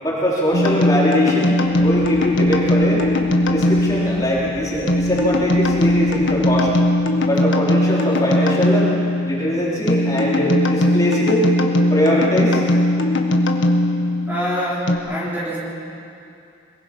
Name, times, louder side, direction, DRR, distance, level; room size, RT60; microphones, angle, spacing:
voice 1, 0.0-3.0 3.5-6.7 7.2-8.9 9.2-11.5 11.9-12.6, equal, 20° left, -7 dB, 4.1 m, -21 dB
sound 1, 0.5-15.0, left 1 dB, 80° left, 1.6 m, -19 dB
sound 2, 1.6-6.8, left 1 dB, 60° left, 3.2 m, -40 dB
voice 2, 14.3-15.6, equal, 10° right, -7 dB, 3.8 m, -25 dB
23.0 x 21.5 x 5.4 m, 2.6 s
head